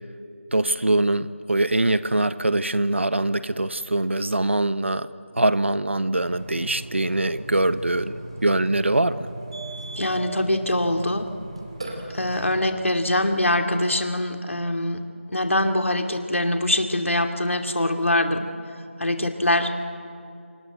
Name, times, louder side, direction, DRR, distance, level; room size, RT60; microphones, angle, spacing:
voice 1, 0.5-5.1 5.4-9.3, right 2 dB, 65° right, 13 dB, 1.2 m, -23 dB
Burping eructation, 6.2-12.6, right 2 dB, 25° right, 2.9 m, -38 dB
voice 2, 10.0-11.3 12.1-15.0 15.3-18.4 19.0-19.7, left 1 dB, 80° left, 5 dB, 2.5 m, -23 dB
27.0 x 26.0 x 8.0 m, 2.6 s
figure-of-eight pair, 175°, 7 cm